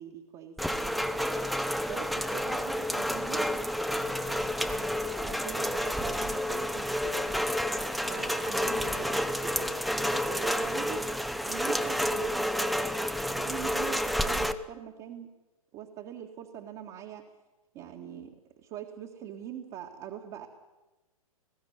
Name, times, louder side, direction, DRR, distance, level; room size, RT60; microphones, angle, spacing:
voice 1, 0.0-1.5 1.9-7.4 8.0-11.1 11.4-12.8 13.1-15.3 15.7-17.3 17.7-20.5, right 9 dB, 30° right, 1 dB, 1.8 m, -43 dB
Rain, 0.6-14.5, equal, ahead, 0.7 m, -30 dB
20.0 x 15.5 x 9.3 m, 1.1 s
figure-of-eight pair, 115°, 19 cm